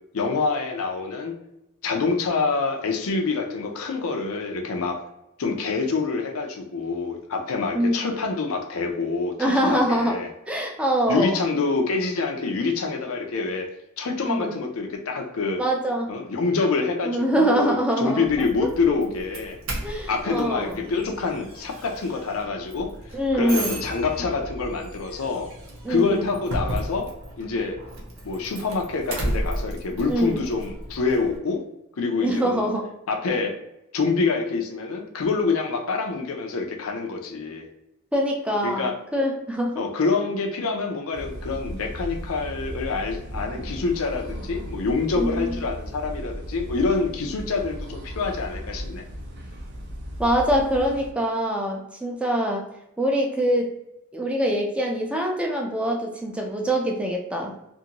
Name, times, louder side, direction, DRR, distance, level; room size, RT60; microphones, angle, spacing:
voice 1, 0.1-1.3 1.8-5.0 5.4-9.3 9.6-10.3 11.1-13.7 14.0-15.6 16.1-19.6 20.1-22.9 23.3-25.5 25.9-27.1 27.4-27.8 28.2-31.6 32.0-32.7 33.1-33.5 33.9-37.7 38.6-38.9 39.8-49.0, left 4 dB, 85° left, 3 dB, 0.5 m, -26 dB
voice 2, 7.7-8.0 9.4-10.2 10.5-11.4 14.2-14.6 15.6-16.1 17.0-18.3 18.6-18.7 19.8-20.7 23.1-23.8 25.8-26.3 30.1-30.4 32.2-32.9 38.1-39.8 45.1-45.5 50.2-52.6 53.0-53.7 54.1-57.5, equal, 5° right, 0 dB, 0.5 m, -24 dB
Doorbell, 18.2-31.4, right 1 dB, 85° right, 0.7 m, -34 dB
sound 1, 41.1-51.1, equal, 55° right, 0.6 m, -36 dB
2.6 x 2.5 x 2.9 m, 0.86 s
head